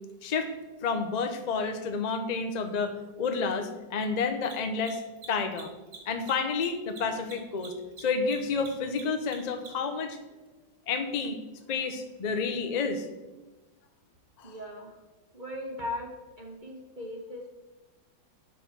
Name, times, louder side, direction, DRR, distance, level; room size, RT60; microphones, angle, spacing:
voice 1, 0.2-0.5 0.8-5.0 5.3-5.7 6.1-7.7 8.0-10.2 10.9-11.4 11.7-13.1 14.4-14.5, left 5 dB, 60° left, 7 dB, 0.4 m, -30 dB
Mechanisms, 1.3-1.4 4.3-10.0, right 5 dB, 85° right, 2.6 m, -47 dB
voice 2, 14.4-15.0 15.3-16.1 16.4-17.5, left 1 dB, 30° right, 1 dB, 1.1 m, -38 dB
7.5 x 6.2 x 5.8 m, 1.1 s
omnidirectional pair, 2.0 m